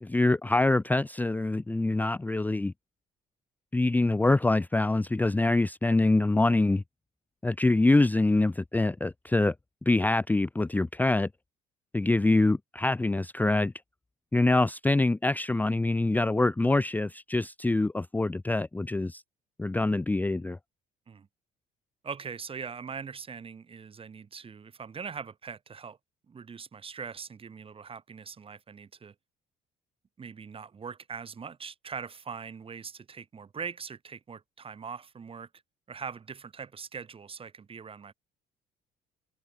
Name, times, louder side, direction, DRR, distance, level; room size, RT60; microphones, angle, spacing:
voice 1, 0.0-2.7 3.7-6.8 7.4-9.5 9.9-11.3 11.9-13.7 14.3-19.2 19.6-20.6, left 2 dB, 10° left, 0.6 m, -25 dB
voice 2, 22.0-26.0 26.3-29.1 30.2-35.5 35.9-38.1, right 6 dB, 35° right, 3.7 m, -41 dB
cardioid pair, 110°, 17 cm